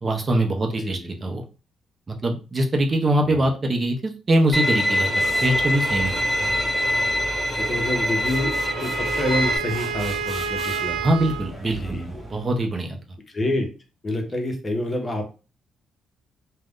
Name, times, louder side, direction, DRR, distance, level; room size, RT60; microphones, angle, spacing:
voice 1, 0.0-1.4 2.1-5.1 5.4-6.5 11.0-12.0 12.3-13.0, right 1 dB, 35° right, 3 dB, 0.6 m, -23 dB
voice 2, 0.8-1.1 3.3-3.5 7.6-8.5 8.8-11.0 11.7-12.2 13.3-13.7 14.0-15.3, left 1 dB, 30° left, 3 dB, 0.8 m, -27 dB
Bowed string instrument, 4.5-9.6, equal, 5° left, 1.3 m, -24 dB
sound 1, 5.2-12.6, equal, 10° right, 1.3 m, -38 dB
Wind instrument woodwind instrument, 8.3-11.5, right 7 dB, 80° right, 0.3 m, -30 dB
2.4 x 2.1 x 3.5 m, 0.33 s
cardioid pair, 90°, 0 cm